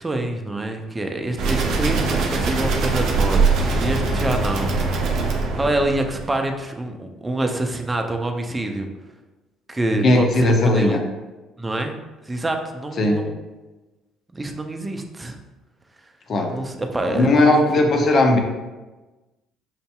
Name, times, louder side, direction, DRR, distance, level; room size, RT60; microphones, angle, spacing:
voice 1, 0.0-4.8 5.3-8.9 9.7-11.0 11.6-12.0 12.3-13.3 14.3-15.4 16.5-17.7, right 2 dB, 20° right, 4 dB, 0.6 m, -26 dB
sound 1, 1.4-6.4, right 4 dB, 65° right, 0.6 m, -22 dB
voice 2, 10.0-11.0 13.0-13.2 16.3-16.5 17.1-18.4, left 2 dB, 50° left, 2 dB, 0.7 m, -17 dB
5.7 x 2.6 x 2.3 m, 1.2 s
hypercardioid pair, 60°, 0 cm